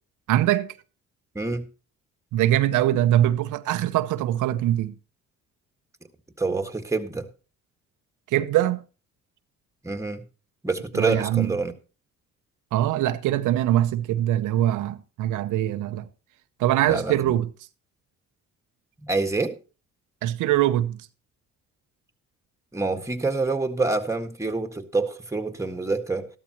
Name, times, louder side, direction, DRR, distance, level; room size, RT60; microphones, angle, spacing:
voice 1, 0.3-0.7 2.3-4.9 8.3-8.8 10.9-11.5 12.7-16.1 16.6-17.5 20.2-21.0, right 13 dB, 90° right, 0.8 m, -22 dB
voice 2, 6.4-7.3 9.8-10.2 10.6-11.7 16.9-17.3 19.0-19.6 22.7-26.3, right 3 dB, 10° right, 1.7 m, -27 dB
13.5 x 12.5 x 3.0 m
cardioid pair, 90°, 30 cm